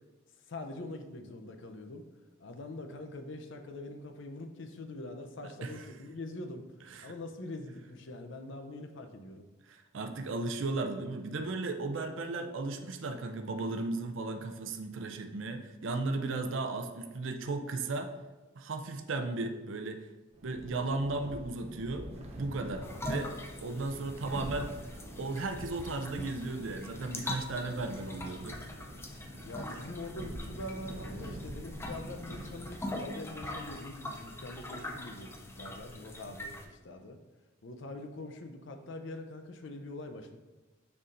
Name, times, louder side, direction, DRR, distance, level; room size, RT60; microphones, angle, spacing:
voice 1, 0.5-2.1 2.4-6.7 7.0-9.5 23.6-23.8 29.4-37.2 37.6-40.4, left 2 dB, 60° left, 6 dB, 0.6 m, -44 dB
voice 2, 5.4-5.9 6.9-7.1 9.7-18.1 18.5-20.1 20.4-22.1 22.4-23.3 23.6-24.8 25.2-28.6, right 3 dB, 65° right, 6 dB, 0.5 m, -35 dB
sound 1, 20.3-33.1, equal, 30° right, 0.8 m, -45 dB
sound 2, 22.8-36.7, left 1 dB, 10° left, 0.5 m, -43 dB
6.6 x 5.6 x 2.6 m, 1.2 s
head